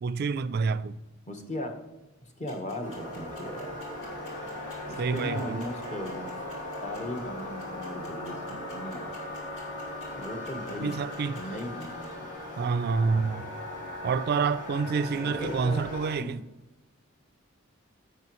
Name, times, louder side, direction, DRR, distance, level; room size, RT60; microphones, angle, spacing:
voice 1, 0.0-1.0 5.0-5.6 10.8-11.4 12.6-13.5 14.0-16.4, right 5 dB, 50° right, 0.4 m, -28 dB
voice 2, 1.3-1.8 2.4-3.8 4.9-6.3 6.8-9.0 10.1-10.9 11.3-12.3 15.1-15.9 16.2-16.4, left 1 dB, 35° left, 1.1 m, -37 dB
sound 1, 2.5-12.1, left 3 dB, 90° left, 3.4 m, -53 dB
sound 2, 2.8-16.2, left 1 dB, 65° left, 3.1 m, -38 dB
11.0 x 8.1 x 3.0 m
head